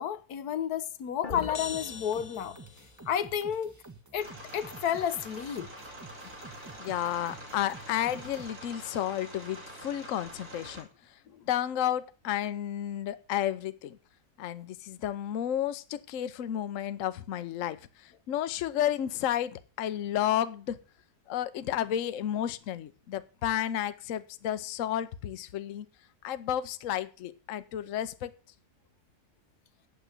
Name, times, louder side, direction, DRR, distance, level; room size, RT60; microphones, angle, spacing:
voice 1, 0.0-2.6 3.1-3.7 4.1-5.7 11.3-11.4, left 9 dB, 80° left, 1.3 m, -31 dB
sound 1, 1.2-2.9, left 5 dB, 40° left, 0.9 m, -39 dB
sound 2, 1.7-8.5, right 3 dB, 15° right, 0.8 m, -50 dB
sound 3, 4.2-10.8, right 1 dB, 75° right, 4.0 m, -46 dB
voice 2, 6.8-10.9 11.5-14.0 14.4-20.8 21.3-25.9 26.2-28.3, left 11 dB, 65° left, 1.0 m, -32 dB
9.0 x 7.3 x 7.9 m
omnidirectional pair, 1.6 m